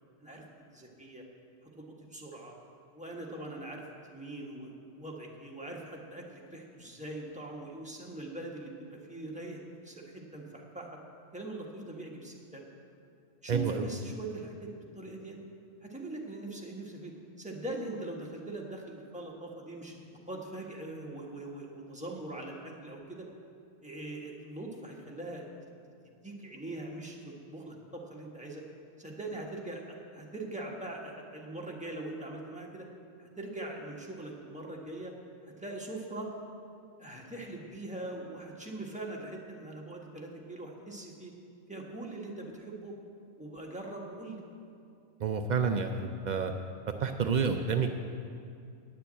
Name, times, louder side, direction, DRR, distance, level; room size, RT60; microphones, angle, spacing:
voice 1, 0.7-1.2 1.6-2.6 2.9-3.8 4.1-11.0 11.3-12.6 13.4-15.4 15.8-23.3 23.8-25.5 26.2-28.6 29.0-32.9 33.2-35.1 35.4-36.3 37.0-41.3 41.7-43.0 43.4-44.4, right 2 dB, 5° right, -2 dB, 1.3 m, -42 dB
voice 2, 13.5-13.9 45.2-46.5 47.0-47.9, right 5 dB, 80° right, 5 dB, 0.4 m, -29 dB
9.8 x 6.9 x 8.7 m, 2.5 s
omnidirectional pair, 1.4 m